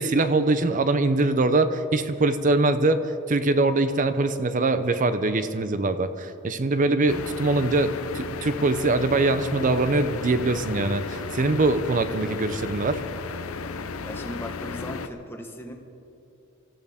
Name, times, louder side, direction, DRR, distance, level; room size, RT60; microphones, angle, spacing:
voice 1, 0.0-3.0 3.3-13.0, right 2 dB, 35° right, 11 dB, 0.6 m, -23 dB
Bedroom with Fan Ambience, 7.1-15.1, left 4 dB, 70° left, 0.6 m, -34 dB
voice 2, 14.0-15.7, left 1 dB, 10° left, 2 dB, 1.3 m, -37 dB
24.5 x 14.5 x 3.6 m, 2.8 s
head